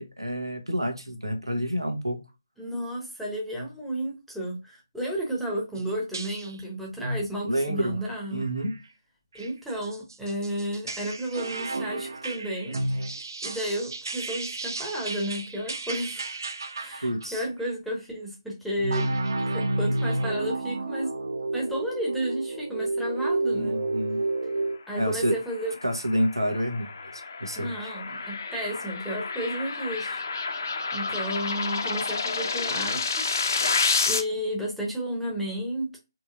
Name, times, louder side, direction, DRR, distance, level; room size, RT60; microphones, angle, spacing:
voice 1, 0.0-2.2 7.4-8.0 8.3-8.7 17.0-17.4 23.5-24.2 24.9-25.4 25.8-27.9, equal, 85° right, 4 dB, 1.2 m, -28 dB
voice 2, 2.6-8.5 9.3-12.8 13.4-16.4 16.7-19.1 19.5-21.1 21.5-23.8 24.9-25.7 27.6-30.6 30.9-33.5 34.0-36.0, right 1 dB, ahead, -3 dB, 0.8 m, -32 dB
sound 1, 5.8-5.9 6.1-6.6 7.0-7.3 7.8-8.0 8.4-8.7 9.4-17.4 18.8-24.8, right 2 dB, 55° right, 0.5 m, -31 dB
sound 2, 25.3-34.2, left 4 dB, 45° left, 0.6 m, -30 dB
4.1 x 3.1 x 2.4 m, 0.26 s
figure-of-eight pair, 150°, 2 cm